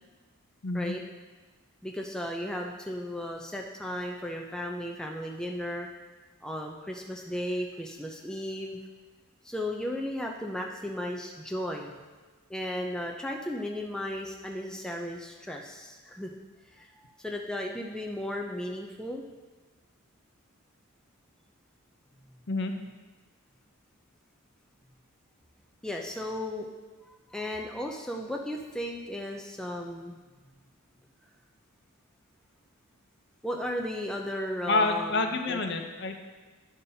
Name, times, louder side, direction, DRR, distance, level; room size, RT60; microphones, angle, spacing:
voice 1, 0.6-0.9 22.5-22.7 34.7-36.2, left 3 dB, 55° left, 5 dB, 0.6 m, -28 dB
voice 2, 1.8-5.9 6.4-8.8 9.4-12.0 12.5-16.3 16.7-16.9 17.2-19.2 25.8-26.7 27.3-30.2 33.4-35.6, left 1 dB, 5° left, 0 dB, 0.4 m, -35 dB
11.0 x 5.5 x 2.7 m, 1.3 s
head